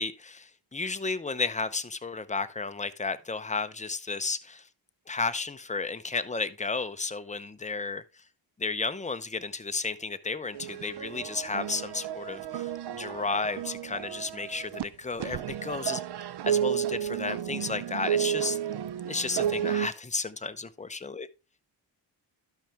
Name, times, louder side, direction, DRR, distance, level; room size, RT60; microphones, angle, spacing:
voice 1, 0.0-4.7 5.1-8.0 8.6-16.0 16.4-18.6 19.1-21.3, left 4 dB, 15° left, 0.7 m, -33 dB
sound 1, 10.5-14.8 15.2-19.9, right 10 dB, 60° right, 0.6 m, -32 dB
12.0 x 5.8 x 3.4 m
cardioid pair, 75°, 45 cm